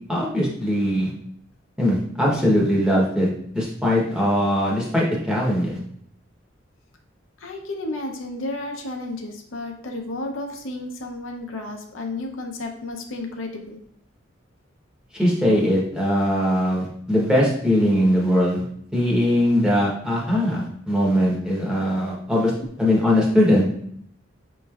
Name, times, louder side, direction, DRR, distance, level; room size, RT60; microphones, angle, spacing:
voice 1, 0.1-1.1 1.8-3.3 3.5-5.8 15.1-18.6 18.9-22.5 22.8-23.6, equal, 5° right, -4 dB, 1.0 m, -20 dB
voice 2, 7.4-13.8, left 2 dB, 85° left, 3 dB, 0.7 m, -32 dB
5.9 x 3.1 x 2.4 m, 0.67 s
head